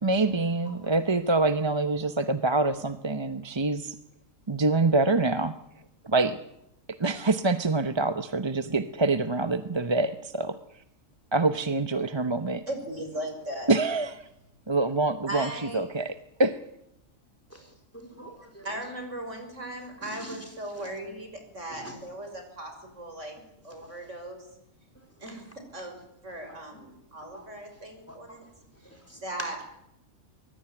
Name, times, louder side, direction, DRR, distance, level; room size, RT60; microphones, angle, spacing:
voice 1, 0.0-4.0 4.5-5.5 6.0-6.4 7.0-10.6 11.3-12.6 13.7-14.2 14.7-16.6, right 3 dB, 25° right, 10 dB, 0.9 m, -25 dB
voice 2, 12.7-13.7 15.3-15.8 18.6-23.3 23.6-24.4 25.2-25.5 25.7-25.9 26.2-28.5 29.2-29.7, right 1 dB, 65° right, 5 dB, 6.5 m, -38 dB
voice 3, 17.9-18.7 20.0-20.4 20.8-20.9 21.7-22.0 27.3-27.5 28.1-28.2 28.8-29.2, equal, 10° left, 5 dB, 4.3 m, -45 dB
24.0 x 21.0 x 9.0 m, 0.81 s
omnidirectional pair, 1.4 m